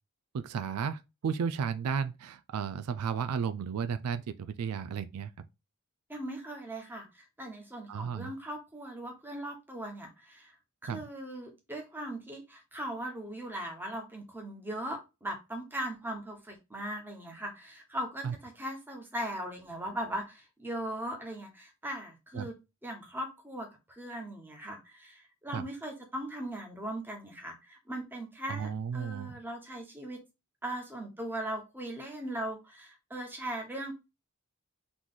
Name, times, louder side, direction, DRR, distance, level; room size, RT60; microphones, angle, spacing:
voice 1, 0.3-5.3 7.9-8.3 10.9-11.0 18.2-18.3 22.3-22.5 25.5-25.6 28.5-29.4, right 6 dB, 75° right, 0.4 m, -33 dB
voice 2, 6.1-10.5 10.8-22.5 22.8-30.2 30.6-33.9, right 1 dB, 10° right, 1.1 m, -39 dB
4.0 x 3.1 x 3.7 m
head